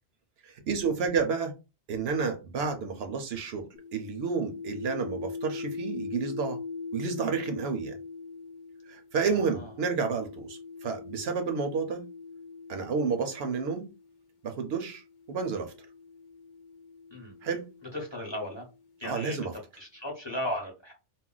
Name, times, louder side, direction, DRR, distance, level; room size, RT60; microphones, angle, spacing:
voice 1, 0.4-1.5 1.9-6.6 6.9-8.0 8.9-12.0 12.7-13.9 14.4-15.7 17.4-17.7 19.0-19.5, right 5 dB, 70° right, 0.8 m, -30 dB
sound 1, 3.8-14.1 15.0-18.8, left 4 dB, 60° left, 0.7 m, -42 dB
voice 2, 17.9-18.7 19.0-19.5 19.8-20.9, left 1 dB, 25° left, 0.8 m, -35 dB
2.4 x 2.0 x 3.7 m
omnidirectional pair, 1.2 m